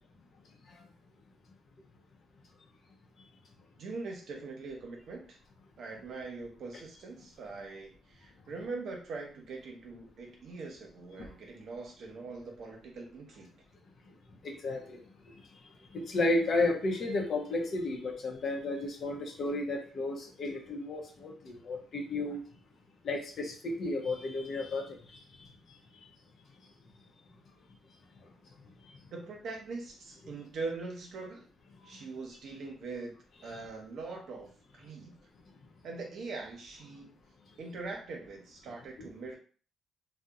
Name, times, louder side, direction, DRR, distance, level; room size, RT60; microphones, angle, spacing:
voice 1, 3.8-5.4 5.8-13.6 29.1-31.4 31.8-33.2 33.4-35.2 35.8-37.2 37.6-39.4, right 3 dB, 65° right, 0.7 m, -42 dB
voice 2, 14.4-22.4 23.0-26.1 28.2-28.3 28.8-28.9 31.8-31.9 39.0-39.1, left 2 dB, 55° left, 0.6 m, -33 dB
2.8 x 2.1 x 2.3 m
cardioid pair, 90°, 0 cm